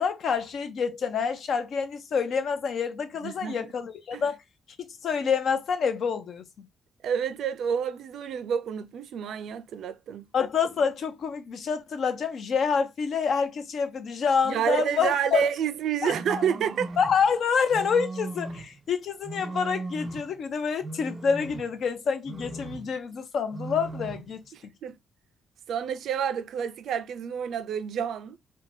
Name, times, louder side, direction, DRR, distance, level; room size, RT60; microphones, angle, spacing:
voice 1, 0.0-4.4 4.8-6.7 10.3-15.5 16.0-16.4 17.0-24.4, left 6 dB, 60° left, 0.6 m, -27 dB
voice 2, 3.2-3.7 4.1-4.2 7.0-10.3 14.5-17.0 24.5-25.0 25.7-28.4, right 8 dB, 70° right, 0.4 m, -29 dB
sound 1, 16.1-17.2 17.7-18.8 19.2-20.4 20.8-21.9 22.3-23.0 23.5-24.3, right 2 dB, 20° right, 0.5 m, -37 dB
2.7 x 2.2 x 2.6 m
cardioid pair, 90°, 0 cm